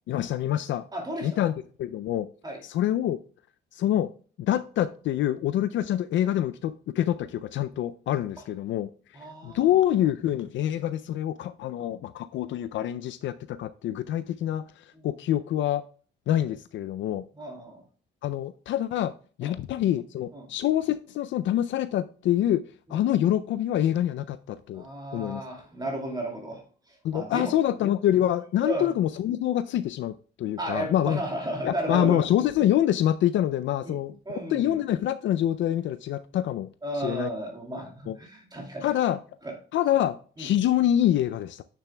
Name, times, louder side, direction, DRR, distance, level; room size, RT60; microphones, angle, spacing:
voice 1, 0.1-0.8 1.2-1.5 1.8-2.3 2.7-3.2 3.7-4.1 4.4-8.9 9.4-14.6 15.0-15.8 16.3-17.2 18.2-19.1 19.4-22.6 22.9-24.8 25.1-25.4 27.0-31.2 31.6-36.7 37.0-37.3 38.1-38.2 38.8-39.2 39.7-41.6, left 11 dB, 70° left, 0.4 m, -26 dB
voice 2, 0.9-1.5 2.4-2.6 9.1-9.7 17.4-17.8 19.4-19.6 20.3-20.5 24.7-26.6 27.1-27.5 28.6-28.9 30.6-32.3 33.8-34.0 34.3-34.8 36.8-38.9 39.4-39.5 40.4-40.5, right 1 dB, 20° right, 2.3 m, -33 dB
9.0 x 6.8 x 2.2 m
cardioid pair, 90°, 20 cm